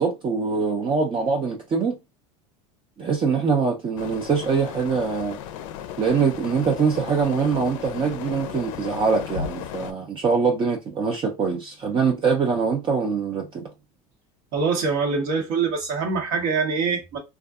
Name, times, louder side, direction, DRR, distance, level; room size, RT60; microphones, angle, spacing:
voice 1, 0.0-2.0 3.0-5.4 6.0-13.7, right 5 dB, 30° right, 0.5 m, -23 dB
sound 1, 4.0-9.9, left 9 dB, 75° left, 0.4 m, -35 dB
voice 2, 14.5-17.2, right 5 dB, 60° right, 1.1 m, -24 dB
2.5 x 2.3 x 2.3 m
supercardioid pair, 115°, 17 cm